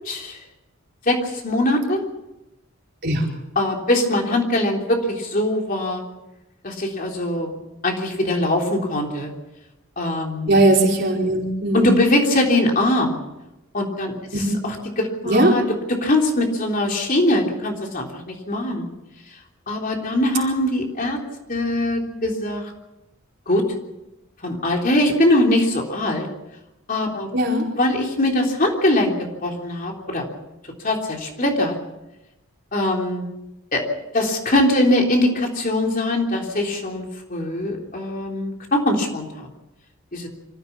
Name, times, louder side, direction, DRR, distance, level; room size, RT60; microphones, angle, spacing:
voice 1, 0.1-0.4 1.1-1.2 1.4-2.0 3.6-6.0 6.6-7.5 7.8-9.3 10.0-10.6 11.7-13.2 13.7-14.1 14.6-15.6 16.0-18.8 19.7-21.2 21.5-22.7 23.5-23.6 24.4-26.3 26.9-27.3 27.8-29.1 29.4-30.2 30.8-31.7 32.7-33.2 33.7-33.8 34.1-37.0 37.3-39.4 40.1-40.3, left 1 dB, 40° left, 1 dB, 3.5 m, -21 dB
voice 2, 10.5-11.9 14.3-14.6 15.2-15.6 27.3-27.7, right 1 dB, 50° right, -1 dB, 4.6 m, -19 dB
26.0 x 15.0 x 7.3 m, 0.97 s
head